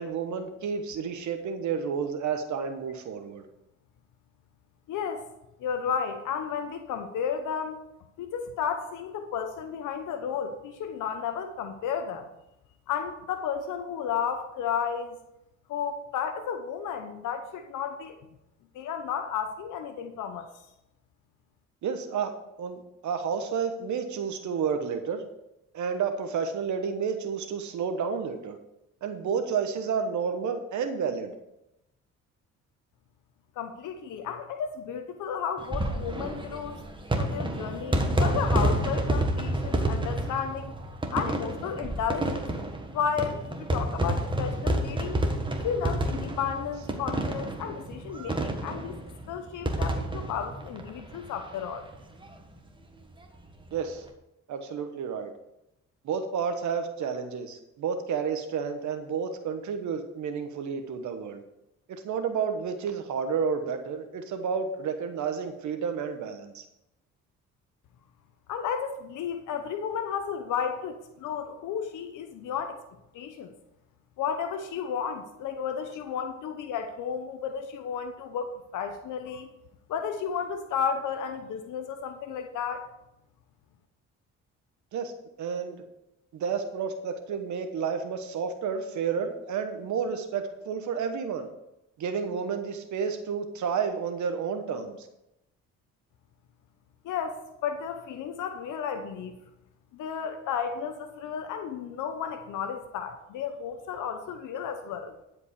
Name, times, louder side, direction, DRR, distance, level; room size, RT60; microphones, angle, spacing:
voice 1, 0.0-3.4 21.8-22.3 22.6-25.2 25.7-28.6 29.0-31.3 53.7-54.0 54.5-55.3 56.0-61.4 61.9-66.6 84.9-85.1 85.4-85.8 86.3-91.5 92.0-95.1, right 6 dB, 70° right, 7 dB, 1.2 m, -31 dB
voice 2, 4.9-5.3 5.6-7.8 8.2-12.3 12.9-15.2 15.7-18.2 18.7-20.7 33.6-36.8 37.1-40.7 41.1-42.4 42.9-45.2 45.6-49.0 49.3-51.9 68.5-72.8 73.1-73.5 74.2-79.5 79.9-82.9 97.0-99.4 99.9-105.2, left 7 dB, 85° left, 7 dB, 0.9 m, -33 dB
sound 1, 35.6-51.6 51.9-52.0 52.2-52.3 53.6-53.9, right 1 dB, 15° right, 1.6 m, -29 dB
11.5 x 5.2 x 6.7 m, 0.88 s
cardioid pair, 90°, 30 cm